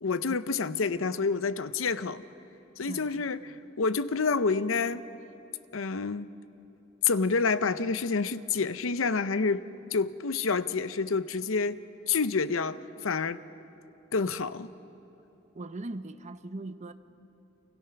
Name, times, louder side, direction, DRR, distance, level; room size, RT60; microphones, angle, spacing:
voice 1, 0.0-2.2 2.8-5.0 5.7-6.3 7.0-9.6 9.9-11.8 12.1-13.4 14.1-14.7, left 4 dB, 75° left, 0.7 m, -28 dB
voice 2, 2.9-3.3 15.5-16.9, right 2 dB, 35° right, 0.8 m, -39 dB
29.5 x 25.5 x 5.9 m
head